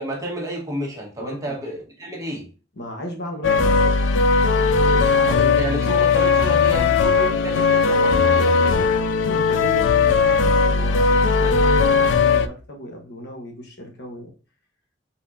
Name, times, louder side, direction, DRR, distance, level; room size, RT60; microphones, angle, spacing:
voice 1, 0.0-2.5 5.3-8.6 11.4-11.7, right 1 dB, 20° right, -2 dB, 1.4 m, -30 dB
voice 2, 1.2-1.6 2.7-4.0 4.8-5.4 8.5-8.9 9.2-14.3, equal, 60° left, 1 dB, 1.2 m, -36 dB
sound 1, 3.4-12.5, left 4 dB, 85° left, 0.4 m, -18 dB
4.1 x 3.9 x 2.7 m, 0.35 s
head